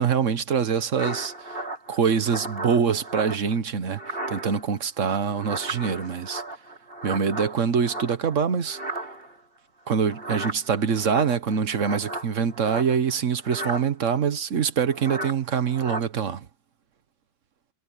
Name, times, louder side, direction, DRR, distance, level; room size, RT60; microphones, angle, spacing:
voice 1, 0.0-1.6 1.9-6.4 7.0-8.8 9.9-16.5, right 6 dB, 80° right, 1.5 m, -24 dB
sound 1, 1.0-3.6 3.9-4.8 5.1-8.4 8.7-9.4 10.1-13.2 13.4-13.9 14.9-15.4 15.7-16.0, right 2 dB, 50° right, 5.5 m, -35 dB
omnidirectional pair, 1.3 m